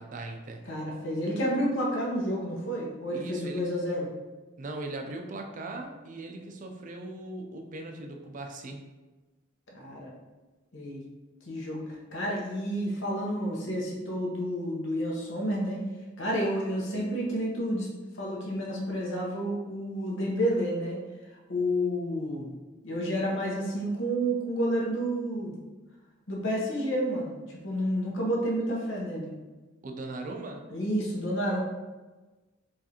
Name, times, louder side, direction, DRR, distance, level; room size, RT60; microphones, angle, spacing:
voice 1, 0.0-0.6 3.1-3.6 4.6-8.8 29.8-30.6, right 2 dB, 40° right, 4 dB, 0.4 m, -39 dB
voice 2, 0.7-4.1 9.7-10.1 10.7-11.0 11.5-11.8 12.1-15.8 16.2-17.9 18.1-21.0 21.5-22.5 22.8-25.6 26.3-29.3 30.7-31.6, equal, 70° left, -3 dB, 0.9 m, -30 dB
4.7 x 2.5 x 2.8 m, 1.2 s
head